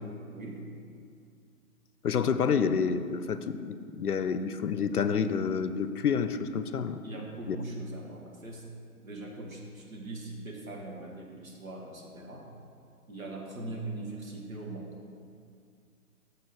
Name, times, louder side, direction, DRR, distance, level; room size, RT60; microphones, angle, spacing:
voice 1, 0.3-0.7 7.0-8.7 9.0-12.5 13.1-14.9, right 2 dB, 65° right, 0 dB, 1.6 m, -41 dB
voice 2, 2.0-7.0 7.5-7.6, left 6 dB, 80° left, 11 dB, 0.6 m, -28 dB
6.9 x 6.5 x 4.6 m, 2.3 s
figure-of-eight pair, 140°, 44 cm